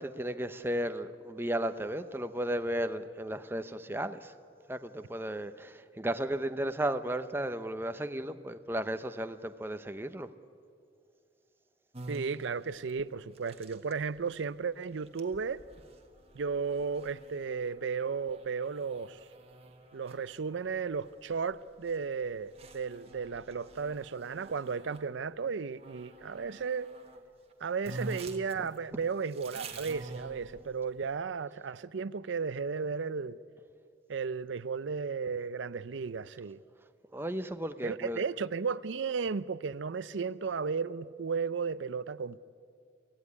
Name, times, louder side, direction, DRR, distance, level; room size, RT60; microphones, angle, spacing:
voice 1, 0.0-4.3 4.7-10.3 37.1-38.2, right 1 dB, 10° right, 0.7 m, -34 dB
sound 1, 11.9-25.1 25.8-27.2 27.5-27.6 27.8-30.9, right 2 dB, 35° right, 1.5 m, -48 dB
voice 2, 12.1-15.6 16.3-19.2 19.9-26.9 27.6-33.4 34.1-36.6 37.8-42.4, right 5 dB, 80° right, 0.5 m, -34 dB
24.5 x 16.0 x 9.8 m
head